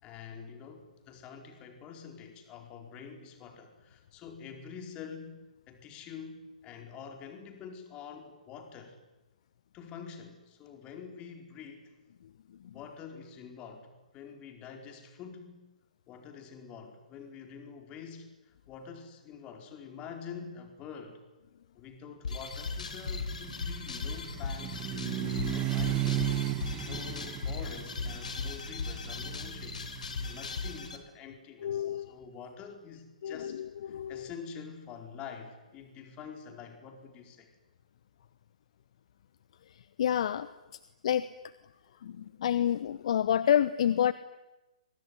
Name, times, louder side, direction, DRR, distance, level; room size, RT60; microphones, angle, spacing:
voice 1, 0.0-5.4 5.7-9.0 9.7-12.0 12.7-13.9 14.1-15.6 16.1-21.2 21.7-24.8 25.4-37.5, left 6 dB, 25° left, 5 dB, 4.6 m, -46 dB
sound 1, 22.2-31.0, left 4 dB, 70° left, 4.4 m, -37 dB
sound 2, 22.7-30.7, right 15 dB, 20° right, 1.5 m, -35 dB
voice 2, 25.0-25.5 31.6-32.1 33.2-34.3 40.0-40.5 41.0-41.3 42.0-44.1, left 10 dB, 55° left, 15 dB, 1.0 m, -29 dB
25.5 x 24.0 x 9.7 m, 1.0 s
figure-of-eight pair, 130°, 4 cm